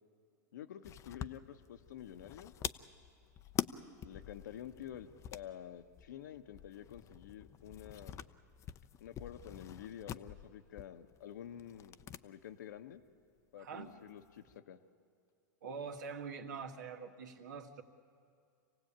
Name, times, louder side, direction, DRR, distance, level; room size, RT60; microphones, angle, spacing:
voice 1, 0.5-2.5 4.0-8.2 9.0-12.0 12.2-13.0 13.5-14.8, left 10 dB, 75° left, 9 dB, 1.2 m, -49 dB
sound 1, 0.8-12.2 12.5-12.6 13.8-14.5, left 10 dB, 30° left, 0.7 m, -46 dB
voice 2, 13.6-13.9 15.6-17.8, right 5 dB, 75° right, 3 dB, 2.0 m, -44 dB
27.0 x 17.0 x 8.9 m, 2.3 s
hypercardioid pair, 115°, 10 cm